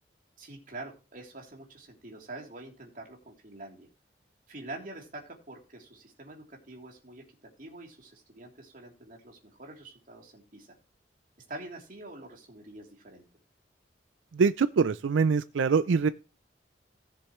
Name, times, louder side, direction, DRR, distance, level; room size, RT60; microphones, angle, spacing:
voice 1, 0.4-3.9 4.5-7.2 7.6-10.7 11.5-13.2, right 2 dB, 45° right, 3.2 m, -45 dB
voice 2, 14.3-16.1, right 5 dB, 90° right, 0.4 m, -24 dB
18.5 x 6.8 x 3.1 m
head